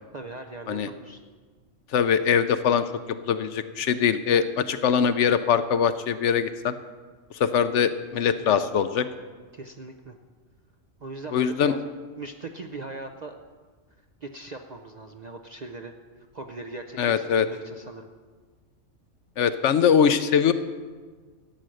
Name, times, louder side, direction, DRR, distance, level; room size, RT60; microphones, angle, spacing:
voice 1, 0.1-1.2 8.4-8.5 9.5-10.2 11.0-11.8 12.2-13.4 14.2-18.1, right 2 dB, 50° right, 5 dB, 0.5 m, -39 dB
voice 2, 1.9-2.9 3.3-6.7 7.3-9.0 11.3-11.7 17.0-17.5 19.4-20.5, left 7 dB, 65° left, 11 dB, 0.8 m, -22 dB
13.0 x 8.9 x 6.4 m, 1.5 s
omnidirectional pair, 1.4 m